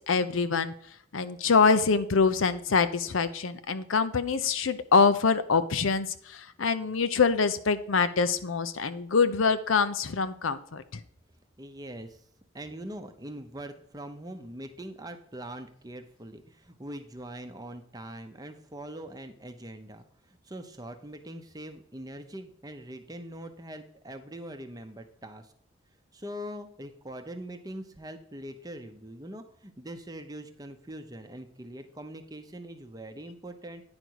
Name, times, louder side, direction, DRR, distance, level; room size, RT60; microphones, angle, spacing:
voice 1, 0.1-0.7 1.1-11.0, left 5 dB, 85° left, 11 dB, 0.6 m, -25 dB
voice 2, 11.6-12.2 12.5-25.5 26.1-33.8, right 1 dB, 20° right, 7 dB, 0.7 m, -42 dB
9.7 x 5.2 x 4.6 m, 0.64 s
head